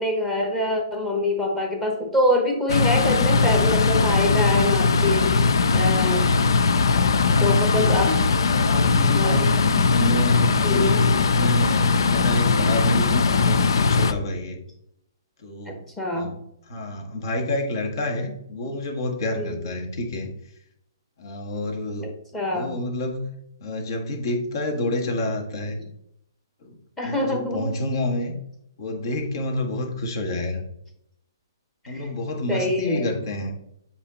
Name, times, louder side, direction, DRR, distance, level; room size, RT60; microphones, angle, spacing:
voice 1, 0.0-5.5 5.7-6.3 7.4-8.2 9.1-9.5 10.6-11.1 15.7-16.3 19.4-19.6 22.0-22.8 27.0-27.7 31.8-32.1 32.5-33.1, left 1 dB, 10° left, 1 dB, 1.0 m, -25 dB
sound 1, 2.7-14.1, left 4 dB, 75° left, 0.5 m, -20 dB
voice 2, 7.2-8.2 8.6-11.0 11.3-14.6 15.4-15.8 16.1-16.4 16.7-20.3 21.2-22.1 22.5-23.3 23.6-25.8 26.6-26.7 27.0-28.4 28.8-30.6 31.9-33.6, left 1 dB, 55° left, 2 dB, 1.6 m, -29 dB
8.1 x 2.9 x 4.0 m, 0.76 s
hypercardioid pair, 155°, 2 cm